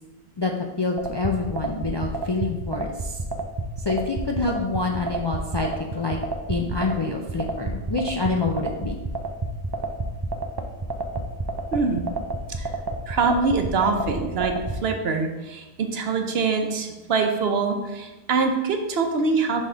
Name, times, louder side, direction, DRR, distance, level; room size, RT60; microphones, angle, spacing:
voice 1, 0.4-3.2 3.8-6.2 6.5-9.0, left 3 dB, 40° left, 1 dB, 0.4 m, -27 dB
sound 1, 1.0-14.8, right 3 dB, 35° right, 0.4 m, -29 dB
voice 2, 11.7-12.0 12.5-12.7 13.1-19.7, right 4 dB, 70° right, 5 dB, 1.0 m, -24 dB
6.4 x 3.5 x 5.5 m, 1.1 s
omnidirectional pair, 1.1 m